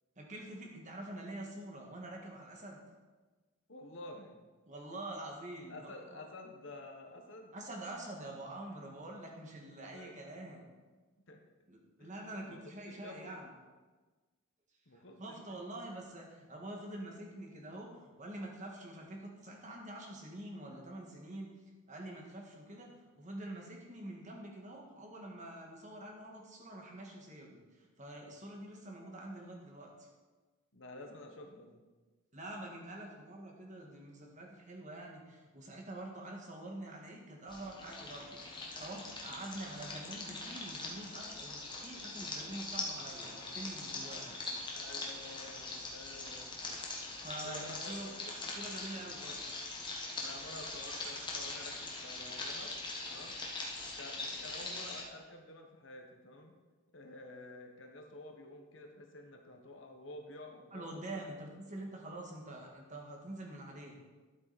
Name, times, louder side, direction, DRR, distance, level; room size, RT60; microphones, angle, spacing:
voice 1, 0.2-2.8 4.6-6.2 7.5-10.7 11.7-13.5 15.2-21.5 21.9-30.1 32.3-44.4 47.1-48.1 48.4-49.5 50.6-50.7 60.7-64.0, right 1 dB, 35° right, 0 dB, 1.8 m, -46 dB
voice 2, 3.7-4.4 5.7-7.5 9.6-10.4 11.3-11.4 12.0-13.4 14.9-15.6 30.7-31.8 39.2-39.4 44.7-46.6 47.4-48.3 50.2-52.8 53.0-53.4 54.0-56.5 56.9-60.9 61.7-61.8, left 2 dB, 60° left, 2 dB, 1.3 m, -51 dB
sound 1, 37.5-55.0, left 2 dB, 20° left, 1.4 m, -42 dB
12.0 x 7.8 x 4.2 m, 1.3 s
head